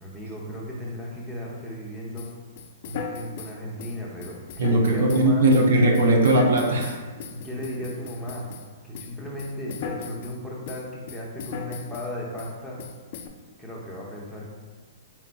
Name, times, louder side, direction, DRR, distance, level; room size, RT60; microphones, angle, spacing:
voice 1, 0.0-2.3 2.8-5.5 7.3-8.5 8.8-12.8 13.6-14.5, left 1 dB, ahead, -5 dB, 0.7 m, -35 dB
sound 1, 2.2-8.7 8.9-10.4 10.7-12.1 12.4-12.5 12.8-13.3, left 6 dB, 50° left, 0.4 m, -37 dB
voice 2, 4.6-7.0, right 1 dB, 70° right, 1 dB, 0.6 m, -19 dB
4.2 x 3.9 x 2.2 m, 1.4 s
hypercardioid pair, 150°, 0 cm